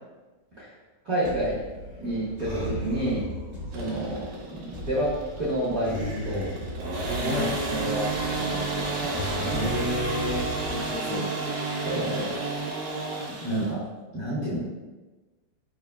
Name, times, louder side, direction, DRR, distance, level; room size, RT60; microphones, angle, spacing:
voice 1, 1.0-3.3 3.7-6.5 7.1-9.7 11.8-12.3 13.4-13.8 14.1-14.6, right 1 dB, 60° right, -11 dB, 0.9 m, -30 dB
sound 1, 1.2-11.0, equal, 30° right, 0.7 m, -36 dB
sound 2, 3.7-13.7, right 3 dB, 85° right, 2.3 m, -31 dB
voice 2, 9.5-11.3, left 2 dB, 80° left, -3 dB, 1.6 m, -32 dB
6.5 x 2.9 x 2.3 m, 1.2 s
omnidirectional pair, 3.4 m